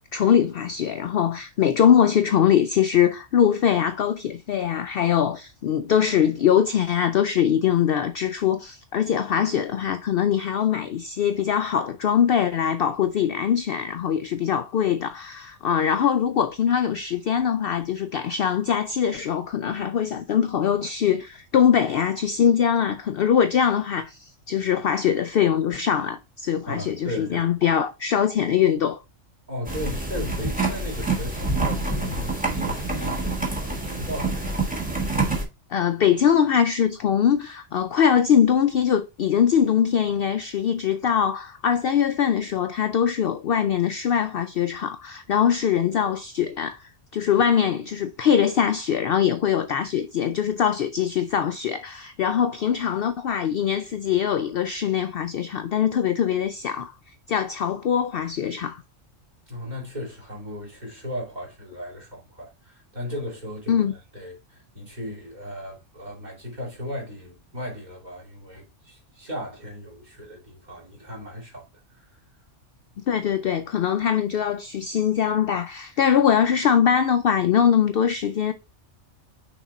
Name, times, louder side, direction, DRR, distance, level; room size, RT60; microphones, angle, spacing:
voice 1, 0.1-29.0 35.7-56.9 57.3-58.8 63.7-63.9 73.0-78.5, left 8 dB, 65° left, 0.6 m, -22 dB
voice 2, 26.7-27.7 29.5-34.5 59.5-71.7 71.9-72.1, left 1 dB, 35° right, 2.6 m, -36 dB
sound 1, 29.6-35.4, right 2 dB, 5° right, 1.3 m, -27 dB
6.1 x 3.9 x 4.0 m
omnidirectional pair, 1.3 m